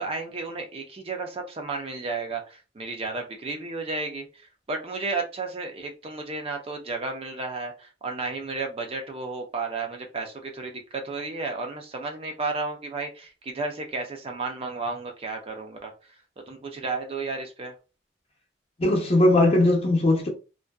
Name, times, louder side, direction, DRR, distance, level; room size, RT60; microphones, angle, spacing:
voice 1, 0.0-15.9 16.5-17.7, right 3 dB, 35° right, 0.4 m, -33 dB
voice 2, 18.8-20.3, left 1 dB, 35° left, 0.7 m, -19 dB
2.5 x 2.1 x 2.2 m
head